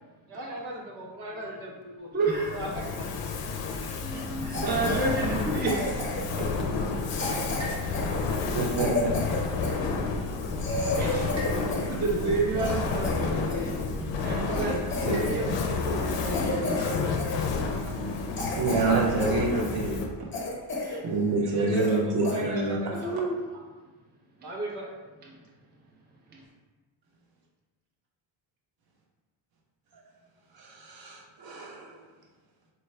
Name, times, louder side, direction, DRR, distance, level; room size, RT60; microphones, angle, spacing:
voice 1, 0.3-2.1 2.5-3.1 21.4-23.2 24.4-24.9, right 1 dB, 90° right, -2 dB, 1.0 m, -37 dB
voice 2, 2.1-2.5 3.9-5.8 6.4-6.5 7.5-7.6 11.0-11.3 11.9-14.7 15.0-16.9 20.8-21.0 21.7-21.8 23.0-23.4, right 3 dB, 20° right, -2 dB, 0.5 m, -30 dB
Fire, 2.3-20.2, left 4 dB, 65° left, 0.5 m, -31 dB
sound 1, 4.3-16.5, left 1 dB, 70° right, 1.5 m, -40 dB
Cough, 4.5-5.1 5.7-6.4 7.1-9.8 10.3-10.4 10.6-11.9 12.3-13.7 14.2-14.3 14.5-15.5 15.7-15.9 16.3-16.9 17.2-17.4 17.9-18.0 18.4-19.4 19.8-19.9 20.3-21.0 21.3-21.4 21.7-22.0 22.2-22.4 22.9-23.2, left 2 dB, 25° left, 0.6 m, -32 dB
voice 3, 8.5-9.1 18.6-20.0 21.0-22.8 30.8-31.9, right 3 dB, 50° right, -1 dB, 0.9 m, -27 dB
4.3 x 2.3 x 3.2 m, 1.3 s
cardioid pair, 140°, 47 cm